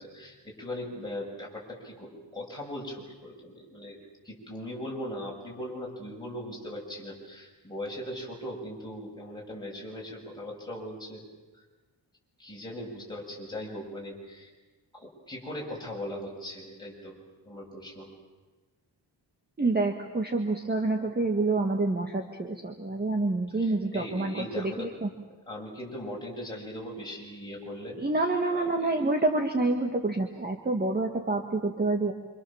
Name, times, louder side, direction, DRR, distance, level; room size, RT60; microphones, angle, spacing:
voice 1, 0.0-4.0 4.2-11.2 12.4-14.5 14.9-17.2 17.4-18.1 23.5-25.2 25.5-28.2 28.5-29.0, left 1 dB, 10° left, -3 dB, 7.1 m, -39 dB
voice 2, 19.6-25.1 28.0-32.1, right 2 dB, 20° right, 3 dB, 1.8 m, -27 dB
27.0 x 26.5 x 7.3 m, 1.3 s
wide cardioid pair, 155°, 42 cm